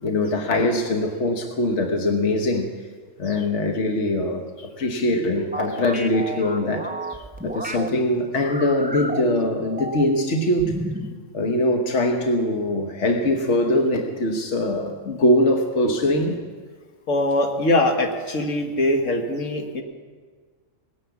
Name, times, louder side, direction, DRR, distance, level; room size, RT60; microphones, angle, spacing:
voice 1, 0.0-2.7 3.2-6.9 7.4-10.8 11.3-16.4 17.6-17.7, left 1 dB, 65° left, 4 dB, 1.5 m, -22 dB
sound 1, 5.5-7.9 8.4-10.3 10.6-11.1, right 2 dB, 10° right, 0.6 m, -32 dB
voice 2, 17.1-19.8, left 1 dB, 80° left, 4 dB, 1.7 m, -22 dB
18.5 x 9.7 x 7.1 m, 1.5 s
omnidirectional pair, 1.3 m